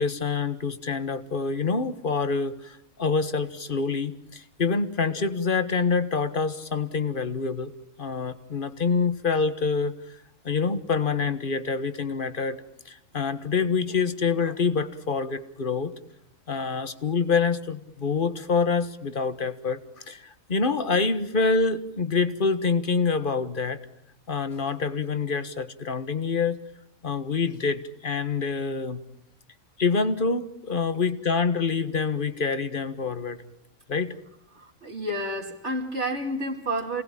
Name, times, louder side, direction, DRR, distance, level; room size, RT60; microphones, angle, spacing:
voice 1, 0.0-7.7 8.0-9.9 10.4-12.6 12.8-15.9 16.5-23.8 24.3-26.6 27.0-29.0 29.8-33.4 33.9-34.1, left 4 dB, 40° left, 12 dB, 1.6 m, -26 dB
voice 2, 34.5-37.0, right 1 dB, 55° right, 1 dB, 2.7 m, -30 dB
28.0 x 19.0 x 8.8 m, 0.75 s
omnidirectional pair, 1.4 m